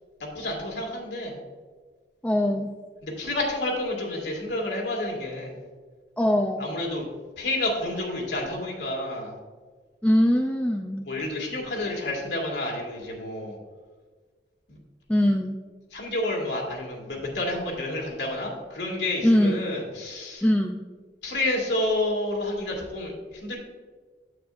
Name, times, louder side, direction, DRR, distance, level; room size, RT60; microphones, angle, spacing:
voice 1, 0.3-1.4 3.0-5.6 6.6-7.0 7.4-9.3 11.1-13.6 14.7-14.8 15.9-20.4 21.2-23.1 23.4-23.6, left 1 dB, 85° left, -1 dB, 2.4 m, -29 dB
voice 2, 2.2-2.7 6.2-6.7 10.0-11.0 15.1-15.6 19.2-19.7 20.4-20.8, equal, 10° left, 2 dB, 0.4 m, -22 dB
9.3 x 8.4 x 2.6 m, 1.5 s
head